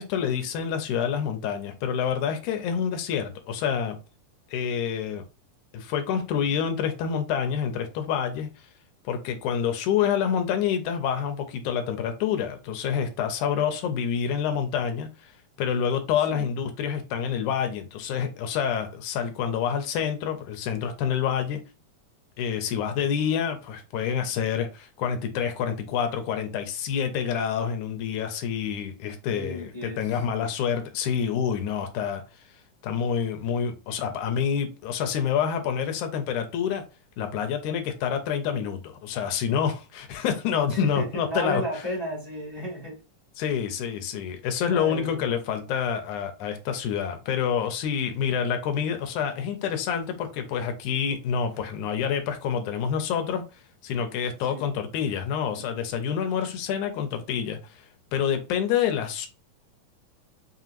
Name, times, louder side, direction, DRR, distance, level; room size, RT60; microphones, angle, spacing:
voice 1, 0.0-4.0 4.5-5.2 5.7-8.5 9.1-15.3 15.6-21.6 22.4-32.2 32.8-36.8 37.2-41.6 43.4-53.4 53.8-57.9 58.1-59.3, left 8 dB, 75° left, 6 dB, 2.0 m, -27 dB
voice 2, 29.3-30.1 40.7-43.0 44.6-45.3 54.5-54.8, equal, 15° left, -5 dB, 1.0 m, -33 dB
5.6 x 2.8 x 2.5 m, 0.31 s
omnidirectional pair, 3.7 m